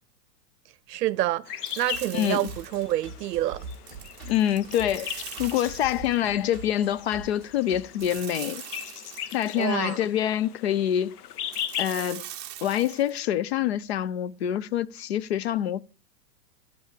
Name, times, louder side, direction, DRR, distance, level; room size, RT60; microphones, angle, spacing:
voice 1, 0.9-3.7 9.6-10.0, right 14 dB, 80° right, 0.7 m, -28 dB
sound 1, 1.5-12.2, left 9 dB, 70° left, 1.1 m, -39 dB
sound 2, 1.7-3.0 3.7-6.2 8.0-9.7 11.5-13.2, right 12 dB, 20° right, 1.1 m, -42 dB
sound 3, 1.9-8.2, right 3 dB, ahead, 3.1 m, -44 dB
voice 2, 4.3-8.6 9.3-11.2 11.8-12.3 12.6-15.8, left 11 dB, 45° left, 0.4 m, -26 dB
11.5 x 5.6 x 6.5 m
supercardioid pair, 160°, 48 cm